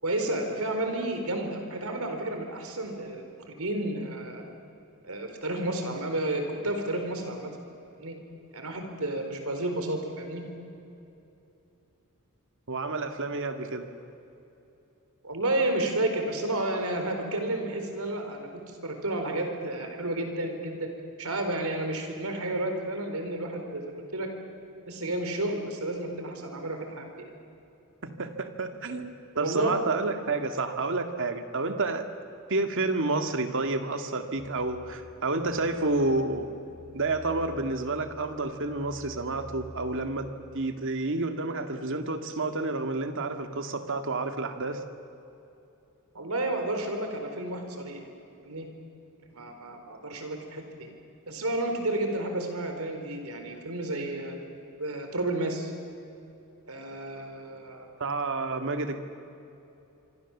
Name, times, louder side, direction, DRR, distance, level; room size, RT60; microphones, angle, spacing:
voice 1, 0.0-4.4 5.0-7.5 8.0-8.2 8.5-10.4 15.2-20.9 21.2-24.3 24.9-27.1 29.3-29.8 46.1-48.0 48.4-48.7 49.3-50.6 51.3-54.3 54.8-55.7 56.7-57.9, right 1 dB, 80° right, 5 dB, 4.3 m, -31 dB
voice 2, 12.7-13.9 28.0-32.1 32.5-36.5 36.9-40.3 40.5-44.8 58.0-59.0, right 3 dB, 60° right, 7 dB, 2.0 m, -30 dB
sound 1, 34.4-40.3, left 1 dB, 35° left, 6.3 m, -49 dB
25.5 x 25.5 x 7.3 m, 2.9 s
head